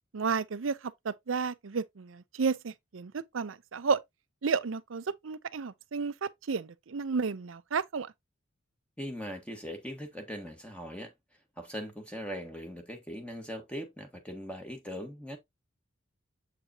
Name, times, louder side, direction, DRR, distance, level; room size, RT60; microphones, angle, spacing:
voice 1, 0.1-0.8 1.0-4.0 4.4-8.1, right 5 dB, 75° right, 0.6 m, -32 dB
voice 2, 9.0-11.1 11.6-15.4, equal, 5° left, 1.3 m, -40 dB
7.6 x 4.8 x 2.8 m
head